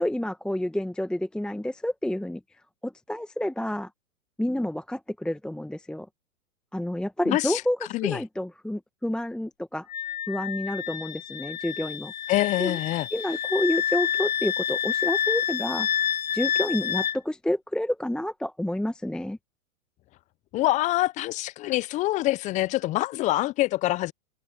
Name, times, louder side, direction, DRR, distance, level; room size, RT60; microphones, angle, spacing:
voice 1, 0.0-2.4 2.8-3.9 4.4-6.1 6.7-9.9 10.3-12.1 12.6-12.8 13.1-15.9 16.3-19.4, left 1 dB, ahead, 1.3 m, -29 dB
voice 2, 7.3-7.6 7.9-8.2 12.3-13.1 20.5-24.1, left 17 dB, 20° left, 0.5 m, -25 dB
Wind instrument woodwind instrument, 9.9-17.2, left 9 dB, 70° left, 2.1 m, -28 dB
hypercardioid pair, 110°, 43 cm